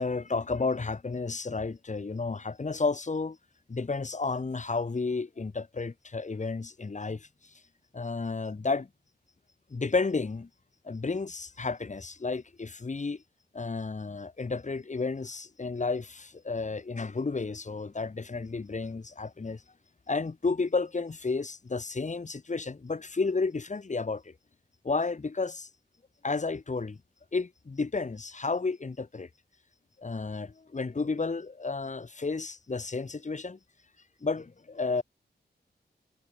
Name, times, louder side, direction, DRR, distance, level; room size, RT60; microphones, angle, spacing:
voice 1, 0.0-3.4 3.7-7.3 7.9-8.9 9.7-10.5 10.8-13.2 13.5-19.6 20.1-24.3 24.8-25.7 26.2-27.0 27.3-29.3 30.0-33.6 34.2-35.0, left 4 dB, 45° left, 4.6 m, -32 dB
wide cardioid pair, 95°, 18 cm